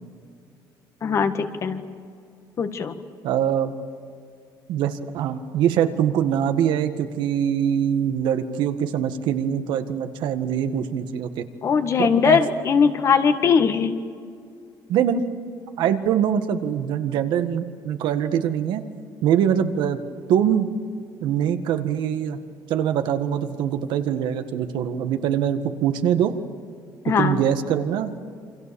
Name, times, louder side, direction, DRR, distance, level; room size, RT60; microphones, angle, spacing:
voice 1, 1.0-1.8 2.6-2.9 11.6-13.9 27.0-27.4, left 6 dB, 40° left, 8 dB, 1.7 m, -20 dB
voice 2, 3.2-3.7 4.7-11.4 12.0-12.4 14.9-15.2 15.8-18.8 19.2-20.0 20.3-20.7 21.2-22.4 22.7-26.3 27.2-28.2, right 9 dB, 75° right, 8 dB, 1.8 m, -23 dB
28.5 x 26.0 x 7.1 m, 2.3 s
cardioid pair, 155°, 8 cm